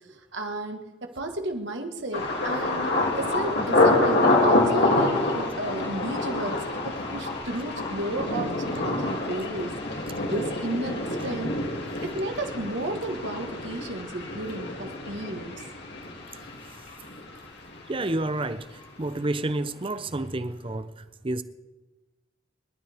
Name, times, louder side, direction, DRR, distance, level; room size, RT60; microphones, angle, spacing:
voice 1, 0.3-2.9 3.2-9.7 10.2-11.6 12.0-15.5, right 1 dB, 65° right, 1.7 m, -33 dB
Thunder, 2.1-17.9 18.1-18.8 19.2-19.5, left 2 dB, 60° left, 2.8 m, -27 dB
voice 2, 17.9-21.4, right 2 dB, 30° right, 0.7 m, -30 dB
26.5 x 12.5 x 3.6 m
head